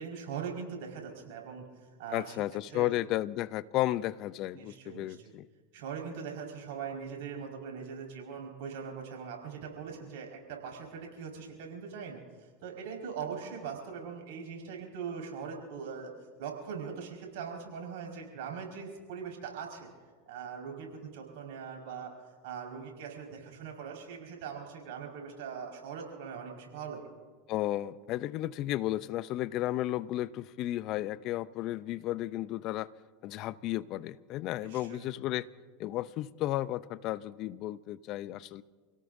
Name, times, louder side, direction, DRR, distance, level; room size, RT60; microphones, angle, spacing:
voice 1, 0.0-1.6 2.0-2.3 2.7-2.9 4.5-5.3 5.7-16.1 16.4-19.9 20.3-22.1 22.4-27.1 34.6-35.1, right 6 dB, 70° right, 1 dB, 5.3 m, -41 dB
voice 2, 2.1-5.5 27.5-32.9 33.2-35.5 35.8-38.6, left 15 dB, 50° left, 17 dB, 0.6 m, -33 dB
29.0 x 17.5 x 2.7 m, 1.5 s
hypercardioid pair, 90°, 0 cm